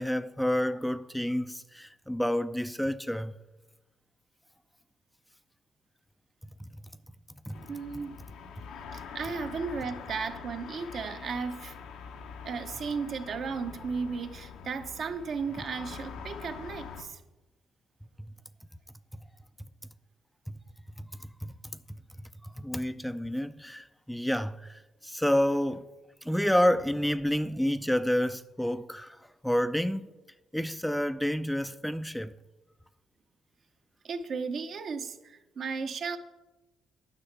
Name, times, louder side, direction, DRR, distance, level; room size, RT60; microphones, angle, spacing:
voice 1, 0.0-3.3 6.6-6.7 7.5-7.6 8.7-9.0 18.2-18.3 20.5-20.6 21.0-21.5 22.4-25.9 26.2-30.1 30.5-32.3, equal, ahead, 0.4 m, -29 dB
sound 1, 7.5-17.0, left 6 dB, 85° left, 1.1 m, -44 dB
voice 2, 7.6-8.2 8.9-11.7 12.4-17.2 34.0-36.2, right 5 dB, 60° right, 1.0 m, -35 dB
10.5 x 5.8 x 8.2 m
cardioid pair, 90°, 0 cm